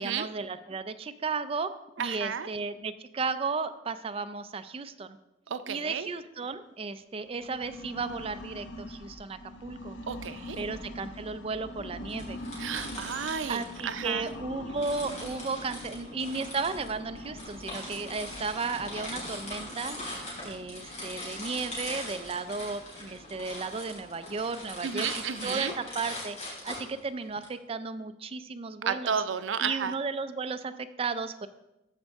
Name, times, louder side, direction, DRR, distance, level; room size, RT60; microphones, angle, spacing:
voice 1, 0.0-5.2 5.7-10.0 10.6-12.4 13.5-20.0 20.4-26.4 26.6-29.1 29.6-31.5, right 4 dB, 30° right, 11 dB, 0.4 m, -34 dB
voice 2, 2.0-2.5 5.5-6.1 10.1-10.6 12.6-14.2 24.8-25.7 28.9-29.9, right 7 dB, 90° right, 12 dB, 0.5 m, -32 dB
sound 1, 7.2-25.9, left 1 dB, 70° left, 0.8 m, -45 dB
sound 2, 12.1-14.3 14.8-27.5, left 1 dB, 40° left, 3.4 m, -41 dB
13.0 x 5.4 x 3.5 m, 0.93 s
head